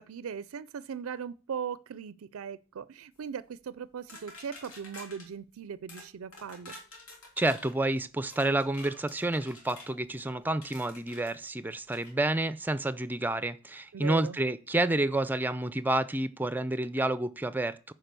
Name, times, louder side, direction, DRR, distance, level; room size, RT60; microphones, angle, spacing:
voice 1, 0.0-6.8 13.9-14.4, right 7 dB, 80° right, 0.4 m, -39 dB
sound 1, 4.1-5.3 5.9-6.1 6.3-7.8 8.3-9.9 10.6-11.3 11.9-12.1, left 2 dB, 80° left, 3.1 m, -48 dB
voice 2, 7.4-17.9, right 2 dB, 10° right, 0.4 m, -29 dB
10.5 x 4.8 x 6.8 m
head